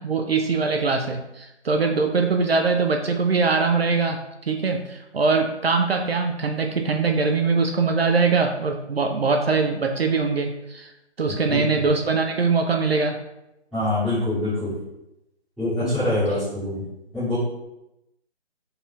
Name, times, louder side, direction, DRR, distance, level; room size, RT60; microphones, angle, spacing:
voice 1, 0.0-10.9 11.2-13.2 15.8-16.0, right 4 dB, 60° right, 4 dB, 0.5 m, -22 dB
voice 2, 11.3-11.6 13.7-14.7 15.6-16.8 17.1-17.4, left 1 dB, ahead, -18 dB, 0.9 m, -25 dB
4.1 x 2.4 x 4.0 m, 0.89 s
figure-of-eight pair, 155°, 34 cm